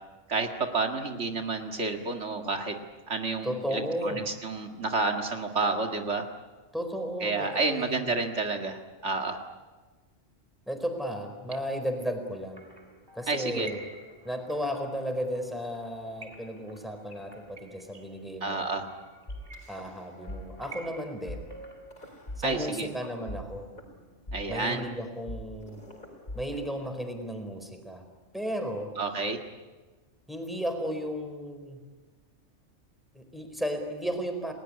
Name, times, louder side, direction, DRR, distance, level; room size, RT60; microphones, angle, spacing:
voice 1, 0.3-2.8 3.1-6.3 7.2-9.4 13.3-13.7 18.4-18.9 22.4-22.9 24.3-24.9 29.0-29.4, right 3 dB, 70° right, 4 dB, 2.2 m, -30 dB
voice 2, 3.4-4.2 6.7-8.0 10.7-12.6 13.1-13.9 14.2-18.9 19.7-21.5 22.4-23.7 24.5-25.8 26.3-28.0 28.3-28.9 30.3-31.8 33.1-34.5, equal, ahead, 5 dB, 4.4 m, -34 dB
sound 1, 12.3-22.1, right 2 dB, 20° right, 3.1 m, -49 dB
sound 2, 19.3-20.4 20.6-20.9 21.3-21.4 21.9-22.9 23.3-27.3, left 1 dB, 40° left, 4.7 m, -42 dB
30.0 x 19.0 x 9.8 m, 1.3 s
omnidirectional pair, 1.2 m